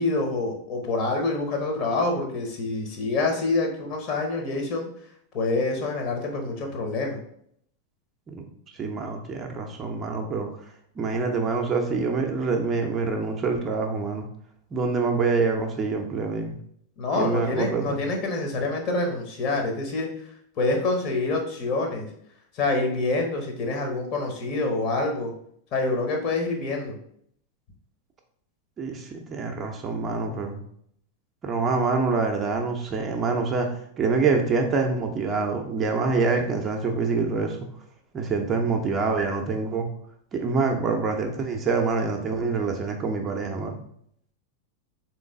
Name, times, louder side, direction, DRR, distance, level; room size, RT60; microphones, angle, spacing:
voice 1, 0.0-4.9 5.3-7.2 17.0-20.1 20.6-22.1 22.5-25.3 25.7-27.0, left 3 dB, 40° left, 2 dB, 1.0 m, -26 dB
voice 2, 8.7-10.5 11.0-14.3 14.7-16.5 17.2-18.0 28.8-30.6 31.4-33.7 34.0-37.6 38.1-39.9 40.3-43.8, right 4 dB, 25° right, 3 dB, 0.6 m, -26 dB
3.8 x 3.1 x 3.6 m, 0.67 s
figure-of-eight pair, 90°, 0 cm